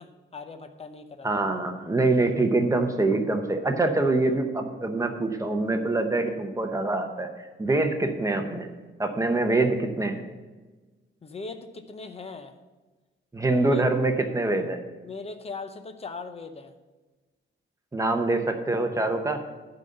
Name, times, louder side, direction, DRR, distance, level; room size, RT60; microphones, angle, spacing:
voice 1, 0.0-1.4 11.2-12.6 13.7-13.8 15.0-16.7, left 4 dB, 30° left, 8 dB, 0.7 m, -40 dB
voice 2, 1.2-8.7 9.0-10.2 13.3-14.8 17.9-19.4, right 2 dB, 15° right, 5 dB, 0.8 m, -25 dB
11.5 x 4.0 x 7.6 m, 1.3 s
wide cardioid pair, 155°, 21 cm